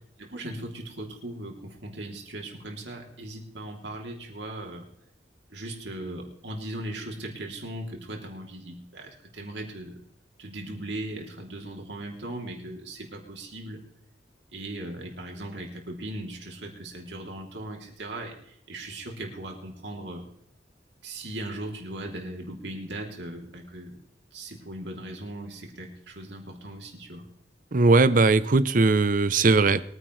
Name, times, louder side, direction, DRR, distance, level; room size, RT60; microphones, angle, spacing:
voice 1, 0.2-4.9 5.5-10.0 10.4-13.8 14.5-20.2 21.0-24.0 24.3-27.3, right 1 dB, 75° right, 3.0 m, -38 dB
voice 2, 27.7-29.8, right 3 dB, 45° right, 0.6 m, -19 dB
22.5 x 9.8 x 3.2 m
head